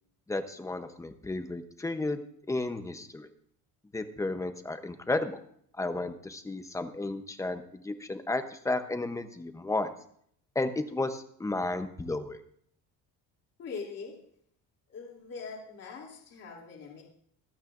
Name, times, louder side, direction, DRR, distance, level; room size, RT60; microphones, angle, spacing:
voice 1, 0.3-2.2 2.5-3.3 3.9-5.4 5.8-9.9 10.5-12.4, left 2 dB, 10° left, 8 dB, 0.7 m, -33 dB
voice 2, 13.6-14.2 14.9-17.0, left 5 dB, 40° left, -2 dB, 2.9 m, -42 dB
25.0 x 8.8 x 2.5 m, 0.65 s
cardioid pair, 170°, 37 cm